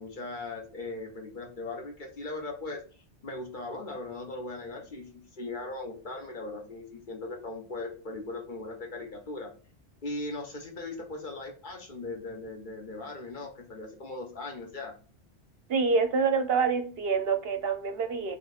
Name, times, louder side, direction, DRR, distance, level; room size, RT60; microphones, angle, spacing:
voice 1, 0.0-2.8 3.2-9.5 10.0-14.9, left 2 dB, 45° left, 2 dB, 0.9 m, -39 dB
voice 2, 15.7-18.4, right 5 dB, 60° right, 7 dB, 0.8 m, -26 dB
3.3 x 3.0 x 3.9 m, 0.39 s
omnidirectional pair, 1.2 m